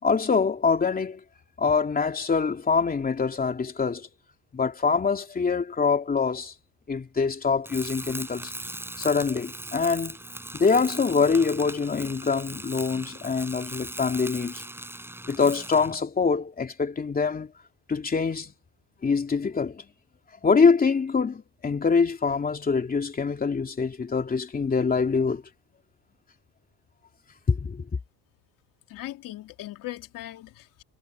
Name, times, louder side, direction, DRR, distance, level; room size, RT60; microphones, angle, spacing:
voice 1, 0.0-1.2 1.6-4.1 4.5-6.5 6.9-8.5 9.0-10.2 10.5-14.6 15.3-17.5 17.9-18.5 19.0-19.8 20.4-25.4 27.5-27.8, left 5 dB, 25° left, 2.9 m, -24 dB
Tools, 7.6-16.0, right 1 dB, 5° right, 6.6 m, -39 dB
voice 2, 28.9-30.8, left 15 dB, 60° left, 3.1 m, -39 dB
supercardioid pair, 105°, 37 cm